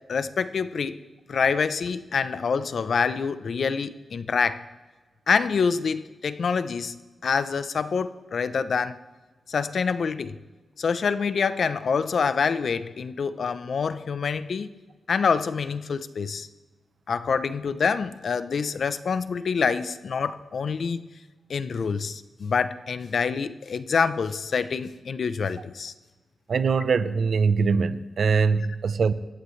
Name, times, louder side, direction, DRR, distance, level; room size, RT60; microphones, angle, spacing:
voice 1, 0.1-1.0 1.3-4.6 5.3-9.0 9.5-10.3 10.8-14.7 15.1-16.5 17.1-21.0 21.5-25.9, left 5 dB, 55° left, 0.7 m, -26 dB
voice 2, 26.5-29.1, right 5 dB, 55° right, 0.7 m, -22 dB
27.0 x 15.0 x 3.3 m
wide cardioid pair, 145°, 0 cm